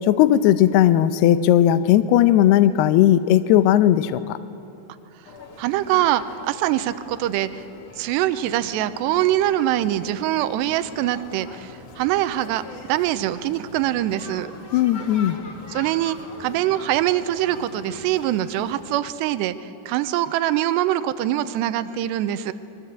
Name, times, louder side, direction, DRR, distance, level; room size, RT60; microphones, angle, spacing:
voice 1, 0.1-4.4 14.7-15.4, left 12 dB, 80° left, 11 dB, 2.5 m, -17 dB
sound 1, 5.2-18.9, left 3 dB, 40° left, 2.6 m, -42 dB
voice 2, 5.6-7.6 8.0-14.5 15.7-22.5, right 13 dB, 80° right, 12 dB, 2.8 m, -23 dB
29.0 x 22.0 x 8.2 m, 2.9 s
omnidirectional pair, 5.3 m